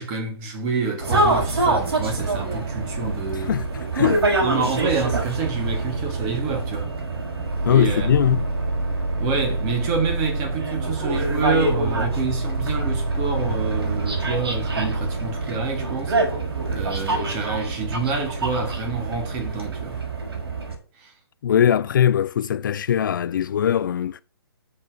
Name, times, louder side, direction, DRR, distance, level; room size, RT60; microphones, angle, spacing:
voice 1, 0.0-3.6 4.4-6.9 7.7-8.1 9.2-16.4 16.7-20.0 21.0-21.1, right 4 dB, 25° right, 2.9 m, -28 dB
sound 1, 1.0-20.7, right 2 dB, 65° right, 5.5 m, -25 dB
voice 2, 3.4-4.2 7.6-8.5 21.4-24.2, left 9 dB, 50° left, 0.5 m, -21 dB
8.5 x 6.7 x 6.6 m
hypercardioid pair, 145°, 14 cm